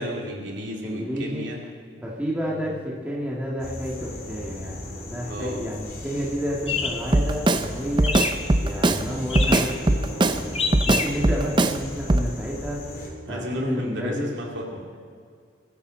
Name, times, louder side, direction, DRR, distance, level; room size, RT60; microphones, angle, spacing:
voice 1, 0.0-1.6 2.5-2.6 5.3-5.7 11.1-11.4 13.3-14.8, equal, 65° right, -1 dB, 2.9 m, -33 dB
voice 2, 0.7-1.4 2.0-8.1 8.6-10.5 10.9-12.8 13.3-14.3, equal, 5° right, -5 dB, 1.9 m, -30 dB
sound 1, 3.6-13.1, left 1 dB, 50° left, 2.7 m, -38 dB
sound 2, 6.7-11.8, left 5 dB, 30° left, 0.9 m, -31 dB
Drum kit, 7.1-7.7 8.0-9.0 9.4-10.4 10.7-11.8 12.1-12.3, right 2 dB, 25° right, 0.5 m, -20 dB
22.5 x 11.5 x 4.0 m, 2.1 s
head